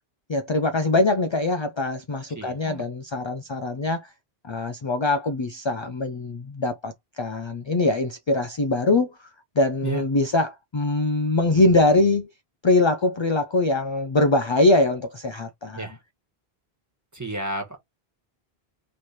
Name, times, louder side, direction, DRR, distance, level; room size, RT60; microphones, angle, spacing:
voice 1, 0.3-4.1 4.5-9.1 9.6-12.3 12.6-15.9, left 2 dB, 45° left, 0.3 m, -23 dB
voice 2, 2.3-2.8 9.8-10.0 15.7-16.0 17.1-17.8, right 2 dB, 15° right, 1.4 m, -31 dB
3.1 x 3.1 x 4.1 m
omnidirectional pair, 1.1 m